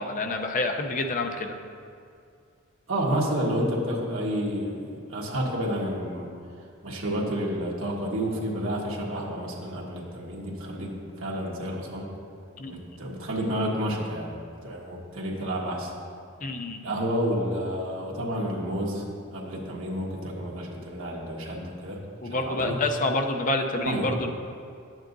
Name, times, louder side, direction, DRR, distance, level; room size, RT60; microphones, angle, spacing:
voice 1, 0.0-1.5 12.6-12.8 16.4-16.8 22.2-24.3, left 2 dB, 40° left, 4 dB, 0.6 m, -28 dB
voice 2, 2.9-6.3 6.8-12.1 12.7-14.3 14.6-15.9 16.8-19.0 19.3-22.0 22.2-22.8 23.7-24.1, equal, 75° right, -2 dB, 1.5 m, -30 dB
12.0 x 8.9 x 2.6 m, 2.4 s
head